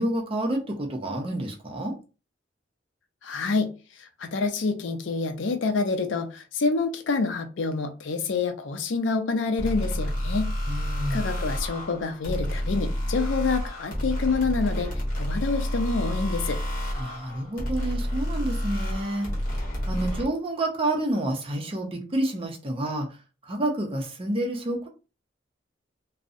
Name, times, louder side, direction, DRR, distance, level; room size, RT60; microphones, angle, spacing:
voice 1, 0.0-1.9 10.7-11.2 17.0-19.3 19.9-23.1 23.5-24.9, right 1 dB, 30° right, 1 dB, 0.5 m, -29 dB
voice 2, 3.2-3.7 4.0-10.5 11.1-16.6, left 4 dB, 80° left, 7 dB, 0.4 m, -27 dB
sound 1, 9.6-20.3, equal, 50° left, 1.0 m, -29 dB
2.6 x 2.0 x 2.4 m, 0.32 s
head